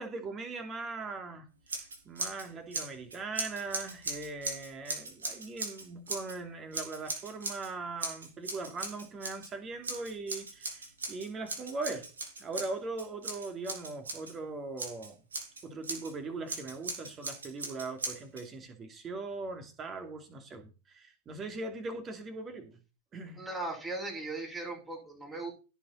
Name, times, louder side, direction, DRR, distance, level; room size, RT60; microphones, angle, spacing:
voice 1, 0.0-1.5 2.0-12.1 12.4-15.2 15.6-22.8 23.1-23.4, right 3 dB, 25° right, 5 dB, 3.0 m, -40 dB
Scissors, 1.7-2.5 2.7-6.4 6.7-7.7 8.0-9.5 9.8-14.3 14.8-16.1 16.5-18.4, right 3 dB, 70° right, 3.6 m, -39 dB
voice 2, 23.4-25.5, right 2 dB, 5° right, -2 dB, 5.9 m, -38 dB
16.5 x 6.4 x 4.3 m, 0.33 s
figure-of-eight pair, 90°, 0 cm